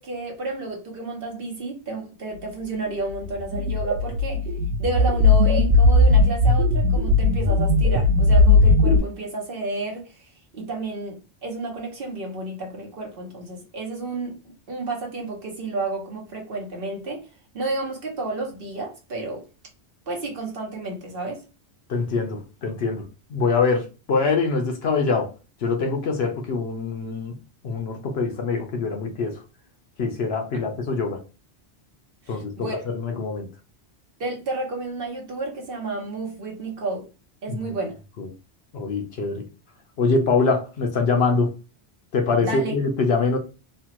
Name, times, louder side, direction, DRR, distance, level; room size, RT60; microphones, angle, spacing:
voice 1, 0.0-4.4 4.8-17.3 17.5-19.4 20.1-21.4 30.5-30.6 32.3-32.9 34.2-37.1 37.4-38.0 42.4-42.7, right 2 dB, 55° right, 1.1 m, -31 dB
sound 1, 3.2-9.0, left 2 dB, 80° right, 0.9 m, -18 dB
voice 2, 21.9-25.3 25.6-27.4 27.6-29.4 30.0-31.2 32.3-33.5 37.5-37.6 38.2-38.3 38.7-39.5 40.0-41.5 42.1-43.4, left 4 dB, 65° left, 0.9 m, -24 dB
3.2 x 2.2 x 2.9 m
omnidirectional pair, 1.2 m